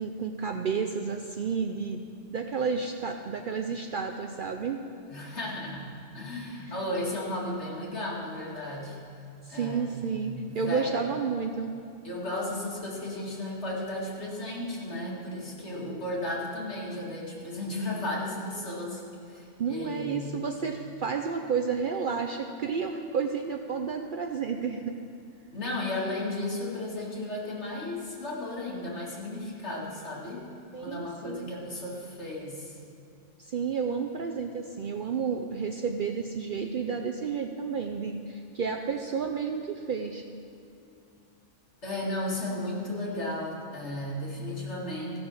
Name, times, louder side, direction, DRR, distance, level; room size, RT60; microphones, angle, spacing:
voice 1, 0.0-2.0 2.3-4.8 9.4-11.7 19.6-24.9 30.7-31.5 33.4-40.2, right 5 dB, 60° right, 4 dB, 0.6 m, -31 dB
voice 2, 5.1-9.0 9.5-11.0 12.0-19.0 19.3-20.4 25.5-30.5 30.8-32.7 41.8-45.2, left 1 dB, 65° left, -5 dB, 2.5 m, -34 dB
15.0 x 6.1 x 6.3 m, 2.6 s
omnidirectional pair, 1.3 m